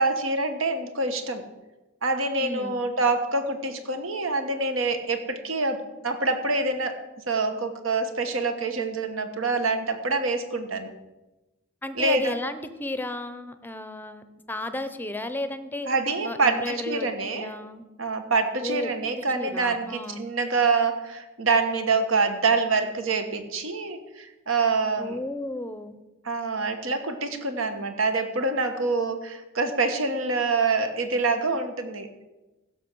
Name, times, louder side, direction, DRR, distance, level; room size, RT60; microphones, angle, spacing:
voice 1, 0.0-1.4 2.0-7.0 7.3-10.9 12.0-12.4 15.9-17.5 18.0-25.2 26.2-32.1, right 3 dB, 70° right, 7 dB, 1.3 m, -26 dB
voice 2, 2.4-2.8 11.8-15.9 16.2-17.8 18.6-18.9 19.3-20.3 25.0-26.0, left 1 dB, 10° left, 10 dB, 0.7 m, -33 dB
15.5 x 6.3 x 6.2 m, 1.1 s
head